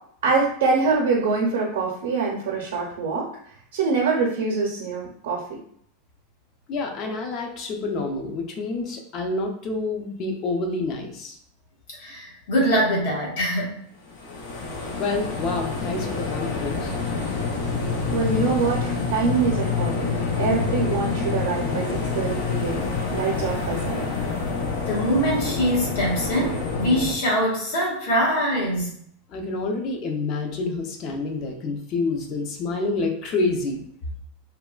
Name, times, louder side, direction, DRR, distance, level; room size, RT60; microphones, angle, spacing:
voice 1, 0.2-3.3 3.7-5.4 18.1-22.8 23.1-24.1, right 4 dB, 80° right, -2 dB, 0.6 m, -24 dB
voice 2, 6.7-11.4 15.0-16.9 29.3-33.8, left 3 dB, 30° left, 3 dB, 0.4 m, -28 dB
voice 3, 12.0-13.8 24.9-28.9, equal, 65° left, -3 dB, 1.2 m, -23 dB
sound 1, 14.1-27.1, left 4 dB, 85° left, 0.7 m, -27 dB
3.2 x 2.2 x 2.3 m, 0.65 s
supercardioid pair, 175°, 0 cm